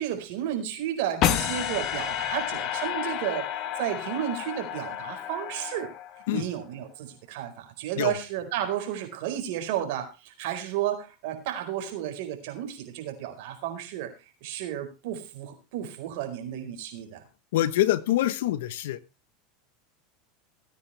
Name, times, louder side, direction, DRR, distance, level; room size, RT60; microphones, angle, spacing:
voice 1, 0.0-5.9 6.3-14.1 14.4-17.2, right 11 dB, 65° right, 6 dB, 4.6 m, -32 dB
sound 1, 1.2-6.4, left 11 dB, 50° left, 1.4 m, -30 dB
voice 2, 17.5-19.0, left 13 dB, 75° left, 16 dB, 1.1 m, -25 dB
17.5 x 9.6 x 3.4 m, 0.28 s
supercardioid pair, 110°, 0 cm